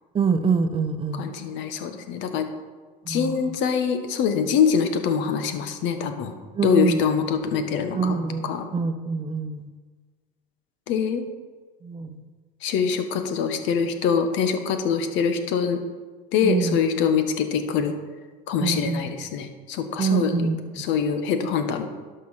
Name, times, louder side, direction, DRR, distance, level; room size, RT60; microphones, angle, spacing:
voice 1, 0.1-1.3 3.0-3.6 6.5-7.0 7.9-9.7 11.8-12.2 16.4-16.8 18.6-19.0 20.0-20.8, right 5 dB, 25° right, 9 dB, 0.9 m, -25 dB
voice 2, 1.1-2.5 3.1-6.3 6.6-8.2 8.4-8.7 10.9-11.2 12.6-15.8 16.3-17.9 18.5-20.5 20.8-21.9, left 6 dB, 65° left, 7 dB, 1.4 m, -24 dB
11.5 x 5.6 x 5.9 m, 1.4 s
supercardioid pair, 95°, 21 cm